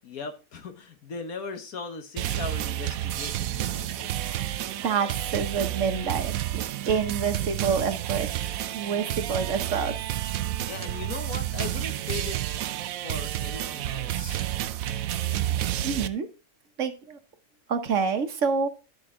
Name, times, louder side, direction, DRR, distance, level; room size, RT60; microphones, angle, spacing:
voice 1, 0.0-4.1 10.7-12.4 12.9-14.4, left 4 dB, 80° left, 7 dB, 1.7 m, -38 dB
sound 1, 2.2-16.1, right 13 dB, 75° right, 1.0 m, -30 dB
voice 2, 4.1-4.5 4.8-8.3 8.7-9.9 15.8-16.3 16.8-17.2 17.7-18.8, right 6 dB, 60° right, 8 dB, 1.3 m, -28 dB
12.0 x 5.3 x 3.7 m, 0.31 s
omnidirectional pair, 1.5 m